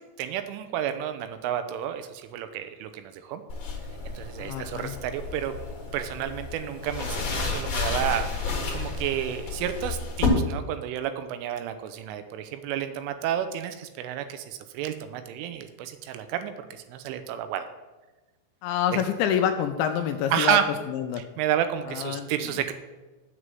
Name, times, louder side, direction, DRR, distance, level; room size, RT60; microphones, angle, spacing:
voice 1, 0.2-3.4 4.1-5.6 5.9-17.7 18.9-19.0 20.3-20.6 21.4-22.7, right 10 dB, 80° right, 9 dB, 3.2 m, -30 dB
sound 1, 3.5-10.3, left 4 dB, 55° left, 2.0 m, -32 dB
voice 2, 4.4-4.9 18.6-20.6 20.9-21.2 21.9-22.7, left 9 dB, 85° left, 6 dB, 2.7 m, -27 dB
7.7 x 6.4 x 7.6 m, 1.1 s
omnidirectional pair, 5.7 m